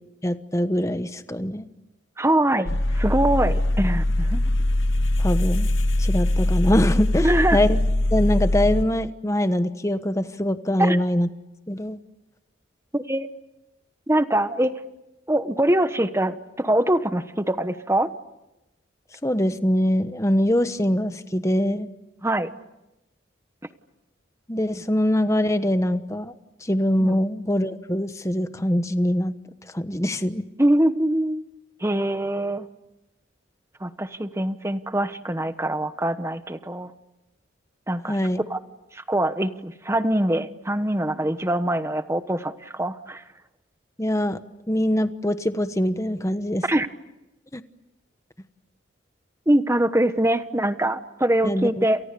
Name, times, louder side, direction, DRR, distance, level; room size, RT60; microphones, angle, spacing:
voice 1, 0.2-1.7 5.2-5.7 6.0-7.8 8.1-11.3 11.7-12.0 19.2-21.9 24.5-26.3 26.6-29.3 29.7-30.4 38.1-38.4 44.0-44.4 44.7-46.6 47.5-47.6 51.4-51.9, left 1 dB, 15° left, 10 dB, 1.1 m, -23 dB
voice 2, 2.2-4.4 7.2-7.6 10.8-11.0 12.9-13.3 14.1-14.7 15.3-18.1 22.2-22.5 27.0-27.2 30.6-31.4 31.8-32.7 33.8-36.9 37.9-38.2 38.5-38.6 38.9-43.2 46.6-46.9 49.5-52.0, right 1 dB, 15° right, 11 dB, 1.1 m, -23 dB
sound 1, 2.7-8.8, left 1 dB, 80° left, 1.2 m, -22 dB
29.5 x 29.0 x 6.9 m, 0.95 s
head